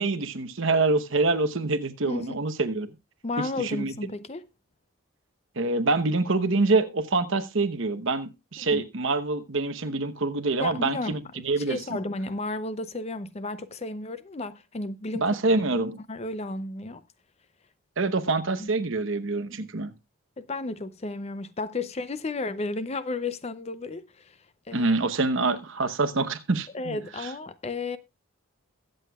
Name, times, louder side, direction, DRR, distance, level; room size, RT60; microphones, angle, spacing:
voice 1, 0.0-2.9 3.6-3.9 5.6-12.0 15.1-16.0 18.0-19.9 24.7-27.0 27.2-27.3, right 3 dB, 60° right, 0.9 m, -26 dB
voice 2, 2.1-2.4 3.2-4.5 8.6-8.9 10.6-15.4 16.1-17.0 18.6-18.7 20.4-24.4 24.7-25.0 26.7-28.0, left 2 dB, 30° left, 0.5 m, -33 dB
22.0 x 7.8 x 2.3 m
head